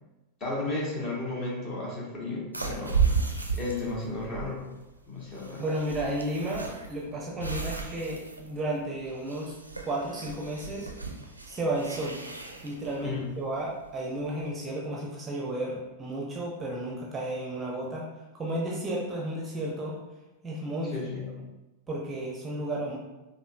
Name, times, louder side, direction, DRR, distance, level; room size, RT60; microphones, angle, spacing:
voice 1, 0.4-4.6 5.1-5.6 13.0-13.3 20.9-21.3, left 2 dB, 30° left, -4 dB, 1.3 m, -34 dB
sound 1, 2.5-14.4, right 5 dB, 85° right, 0.4 m, -34 dB
voice 2, 5.6-9.5 9.8-10.9 11.5-12.2 12.6-18.1 18.3-19.9 20.4-21.3 21.9-23.0, right 1 dB, 15° right, -3 dB, 0.6 m, -33 dB
5.1 x 2.5 x 2.4 m, 1.1 s
figure-of-eight pair, 90°, 0 cm